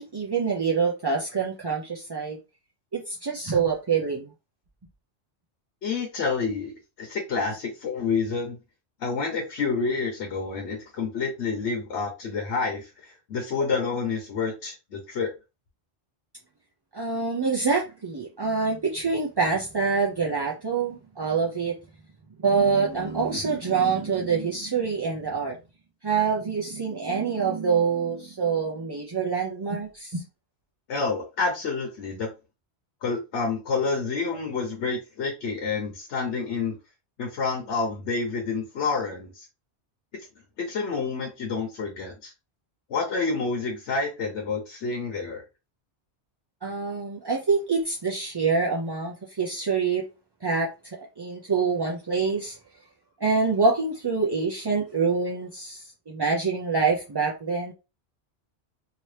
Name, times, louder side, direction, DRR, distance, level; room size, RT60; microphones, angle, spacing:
voice 1, 0.0-2.4 2.9-4.3 16.9-21.8 22.4-25.6 26.0-30.2 46.6-50.0 50.4-52.6 53.2-57.7, right 5 dB, 35° right, 0.4 m, -26 dB
voice 2, 5.8-8.6 9.0-15.3 30.9-32.3 33.0-36.8 37.2-39.5 40.6-42.3 42.9-45.4, left 4 dB, 80° left, 1.2 m, -28 dB
2.9 x 2.8 x 3.2 m
omnidirectional pair, 1.2 m